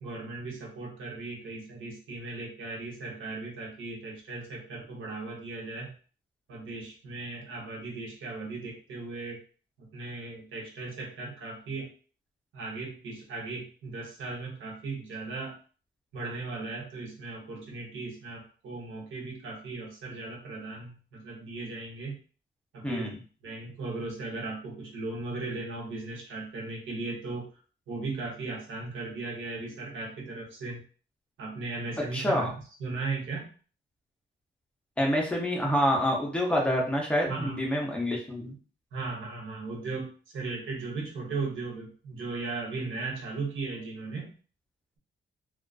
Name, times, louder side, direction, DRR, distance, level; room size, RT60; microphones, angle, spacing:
voice 1, 0.0-5.9 6.5-9.4 9.8-11.9 12.5-15.6 16.1-22.2 22.7-23.1 23.4-27.5 27.9-30.8 31.4-32.5 32.8-33.5 37.3-37.6 38.9-44.3, right 3 dB, 80° right, -1 dB, 0.8 m, -37 dB
voice 2, 22.8-23.2 32.1-32.5 35.0-38.6, equal, 5° left, -2 dB, 0.6 m, -27 dB
2.3 x 2.3 x 2.3 m, 0.39 s
wide cardioid pair, 150°, 20 cm